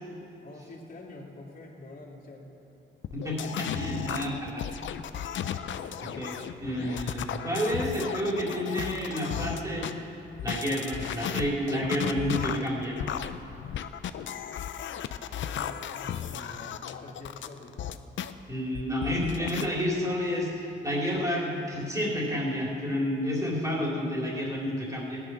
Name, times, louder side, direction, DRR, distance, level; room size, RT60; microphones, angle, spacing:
voice 1, 0.4-2.5 5.6-6.3 15.4-17.8, left 2 dB, 45° left, -3 dB, 3.0 m, -46 dB
sound 1, 3.0-9.9 10.4-18.3 18.7-19.6, left 9 dB, 70° left, 0.6 m, -35 dB
voice 2, 3.1-4.7 5.5-5.8 6.2-10.1 10.4-13.0 18.5-25.2, equal, 15° right, -3 dB, 3.5 m, -30 dB
17.0 x 11.0 x 6.3 m, 2.9 s
cardioid pair, 110°, 21 cm